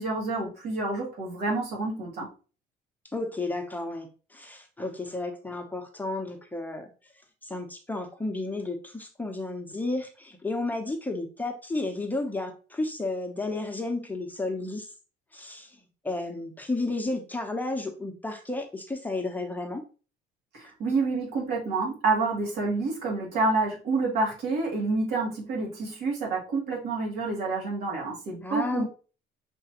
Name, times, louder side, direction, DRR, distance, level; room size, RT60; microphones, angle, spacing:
voice 1, 0.0-2.3 20.5-28.8, right 3 dB, 75° right, -3 dB, 2.2 m, -28 dB
voice 2, 3.1-6.9 7.4-14.9 15.3-15.8 16.0-19.8 28.4-28.8, left 2 dB, 10° left, 4 dB, 0.8 m, -32 dB
5.7 x 3.0 x 2.9 m, 0.35 s
cardioid pair, 110°, 17 cm